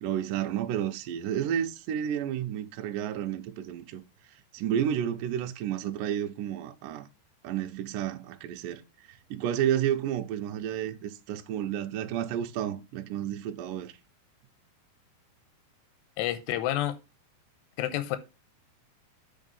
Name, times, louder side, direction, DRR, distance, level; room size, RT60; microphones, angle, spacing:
voice 1, 0.0-4.0 4.5-7.1 7.4-8.8 9.1-13.9, right 10 dB, 80° right, 1.9 m, -31 dB
voice 2, 16.2-17.0 17.8-18.2, left 13 dB, 90° left, 2.9 m, -29 dB
7.4 x 5.1 x 5.4 m
omnidirectional pair, 4.9 m